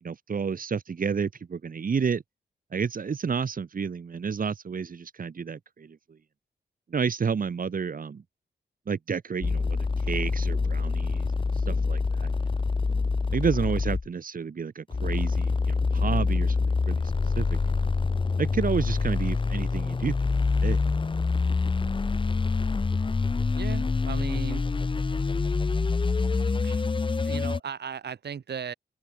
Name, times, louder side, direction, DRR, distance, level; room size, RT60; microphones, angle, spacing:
voice 1, 0.0-2.2 2.7-6.0 6.9-8.2 8.9-11.3 11.7-12.5 13.3-17.0 17.4-17.9 18.4-20.8, right 6 dB, 50° right, 1.6 m, -30 dB
sound 1, 9.4-14.1 14.9-27.6, left 4 dB, 30° left, 0.8 m, -26 dB
voice 2, 23.5-24.6 26.6-26.8 27.2-28.7, right 7 dB, 70° right, 1.8 m, -36 dB
open air
wide cardioid pair, 130°, 18 cm